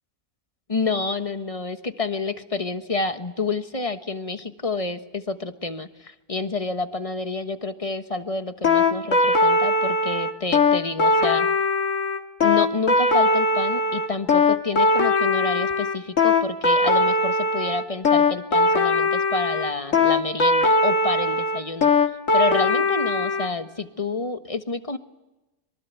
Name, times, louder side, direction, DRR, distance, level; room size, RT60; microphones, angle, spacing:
voice 1, 0.7-11.5 12.4-21.9 22.3-25.0, left 3 dB, 25° left, 10 dB, 1.2 m, -29 dB
sound 1, 8.6-23.5, left 3 dB, 50° left, 2.2 m, -20 dB
25.5 x 23.5 x 8.3 m, 1.0 s
omnidirectional pair, 1.7 m